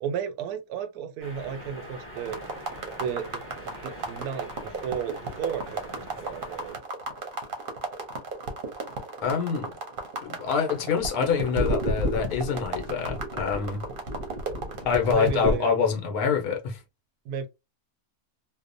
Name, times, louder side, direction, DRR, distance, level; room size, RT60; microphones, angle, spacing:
voice 1, 0.0-2.4 3.0-3.4 3.8-6.8 15.1-15.8 17.3-17.5, right 8 dB, 90° right, 1.1 m, -33 dB
sound 1, 1.2-6.8, equal, 15° left, 0.6 m, -44 dB
sound 2, 2.2-15.6, right 1 dB, 50° right, 0.7 m, -32 dB
voice 2, 9.2-9.7 10.2-13.8 14.9-16.8, left 6 dB, 75° left, 1.2 m, -26 dB
2.8 x 2.0 x 2.5 m
omnidirectional pair, 1.6 m